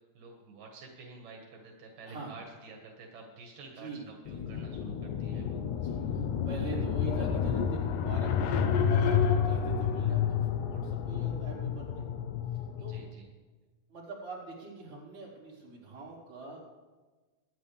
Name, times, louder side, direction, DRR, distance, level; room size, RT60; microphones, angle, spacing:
voice 1, 0.1-5.6 12.8-13.3, right 3 dB, 80° right, 0 dB, 3.3 m, -50 dB
voice 2, 2.1-2.4 3.8-4.4 5.8-12.0 12.8-13.0 13.9-16.6, right 3 dB, 40° right, -7 dB, 5.3 m, -44 dB
sound 1, 4.3-13.1, left 7 dB, 75° left, 2.2 m, -30 dB
24.5 x 10.5 x 3.4 m, 1.3 s
omnidirectional pair, 3.7 m